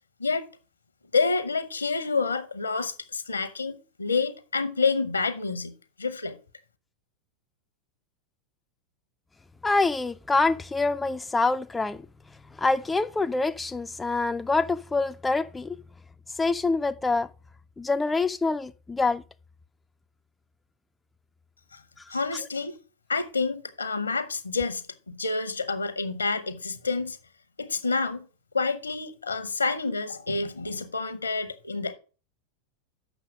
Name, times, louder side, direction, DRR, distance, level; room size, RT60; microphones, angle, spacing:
voice 1, 1.1-5.7 6.0-6.4 21.7-21.8 22.1-22.8 23.1-27.2 27.6-28.2 28.5-31.9, left 4 dB, 75° left, 0.8 m, -28 dB
voice 2, 9.6-12.0 12.6-15.8 16.4-17.3 17.8-19.2, left 3 dB, 10° left, 0.3 m, -25 dB
7.2 x 6.0 x 4.8 m
figure-of-eight pair, 90°, 0 cm